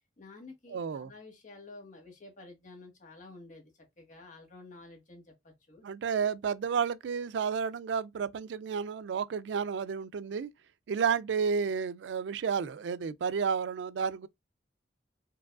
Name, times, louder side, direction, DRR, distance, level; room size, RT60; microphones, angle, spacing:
voice 1, 0.2-5.8, left 3 dB, 45° left, 1.5 m, -51 dB
voice 2, 0.7-1.1 5.8-10.5 10.9-14.3, right 6 dB, 85° right, 0.4 m, -31 dB
4.8 x 2.9 x 2.4 m
head